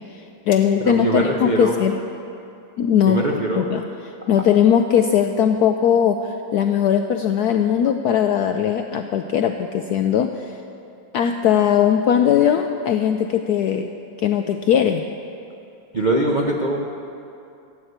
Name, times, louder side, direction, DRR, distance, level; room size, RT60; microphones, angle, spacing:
voice 1, 0.1-2.0 2.8-3.2 3.6-3.8 4.3-10.6 11.1-13.9 14.2-15.0, left 9 dB, 75° left, 6 dB, 0.9 m, -19 dB
voice 2, 0.8-1.7 3.1-3.7 15.9-16.8, right 2 dB, 50° right, -1 dB, 0.5 m, -22 dB
13.0 x 8.4 x 7.9 m, 2.6 s
omnidirectional pair, 2.1 m